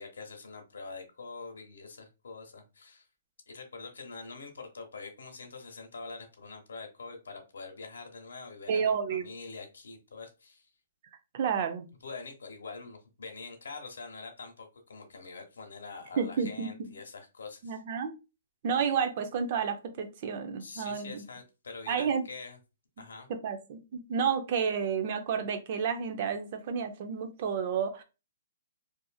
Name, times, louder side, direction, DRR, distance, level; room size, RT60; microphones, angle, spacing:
voice 1, 0.0-3.1 3.5-10.7 12.0-17.8 20.6-22.6 23.0-23.3, left 4 dB, 90° left, 3 dB, 0.9 m, -45 dB
voice 2, 8.7-9.3 11.3-11.9 16.2-16.9 17.6-18.1 18.6-21.2 21.9-22.2 23.3-28.0, right 6 dB, 45° right, 7 dB, 0.5 m, -31 dB
2.7 x 2.5 x 2.3 m, 0.29 s
hypercardioid pair, 155°, 0 cm